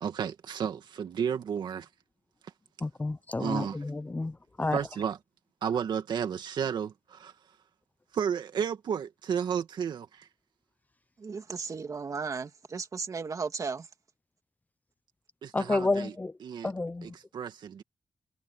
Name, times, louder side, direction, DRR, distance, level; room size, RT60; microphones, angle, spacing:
voice 1, 0.0-1.9 3.4-3.8 4.7-5.2 5.6-7.3 8.1-10.3 15.4-16.2 16.4-16.7 17.0-17.8, right 7 dB, 85° right, 2.3 m, -32 dB
voice 2, 2.8-4.3 4.6-4.8 15.5-16.3 16.6-17.1, left 2 dB, 20° left, 0.8 m, -30 dB
voice 3, 11.2-13.9, right 5 dB, 50° right, 2.4 m, -35 dB
cardioid pair, 95°, 7 cm